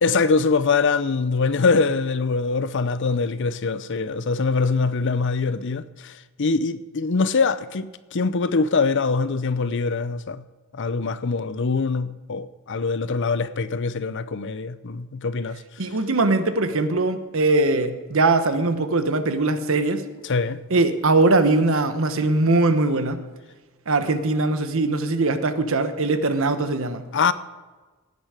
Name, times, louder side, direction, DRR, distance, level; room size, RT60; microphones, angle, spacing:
voice 1, 0.0-10.4 10.7-15.6 20.2-20.6 27.1-27.3, left 4 dB, 60° left, 0.6 m, -23 dB
voice 2, 15.8-20.1 20.7-23.2 23.9-27.0, right 2 dB, 70° right, 1.1 m, -21 dB
17.0 x 9.5 x 5.0 m
head